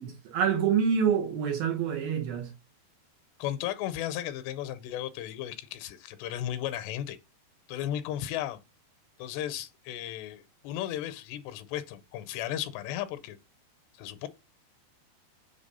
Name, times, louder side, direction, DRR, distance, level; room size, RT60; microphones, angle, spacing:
voice 1, 0.3-2.5, right 7 dB, 70° right, 2.5 m, -26 dB
voice 2, 3.4-7.2 7.7-8.6 9.2-13.4 13.9-14.3, left 12 dB, 80° left, 2.7 m, -35 dB
7.6 x 3.4 x 5.4 m
omnidirectional pair, 5.0 m